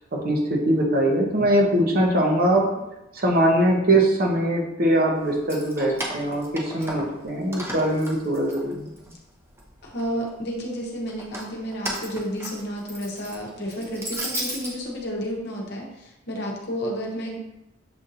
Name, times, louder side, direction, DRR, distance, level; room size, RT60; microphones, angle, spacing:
voice 1, 0.1-2.7 3.1-8.9, right 1 dB, 50° right, 0 dB, 0.8 m, -22 dB
Keys jangling, 5.3-7.2 7.5-9.1 9.6-10.3 11.1-14.7, right 1 dB, 15° right, 0.6 m, -34 dB
voice 2, 9.8-17.4, equal, 55° left, -1 dB, 0.9 m, -31 dB
6.9 x 2.6 x 2.6 m, 0.92 s
head